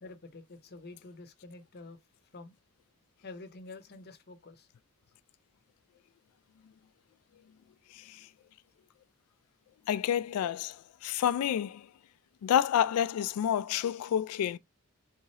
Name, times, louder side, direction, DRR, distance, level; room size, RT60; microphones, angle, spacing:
voice 1, 0.0-2.0 2.3-2.5 3.2-4.7, left 3 dB, 50° left, 0.8 m, -48 dB
voice 2, 7.9-8.3 9.9-11.9 12.4-14.6, left 9 dB, 90° left, 0.3 m, -29 dB
3.5 x 3.2 x 2.7 m
head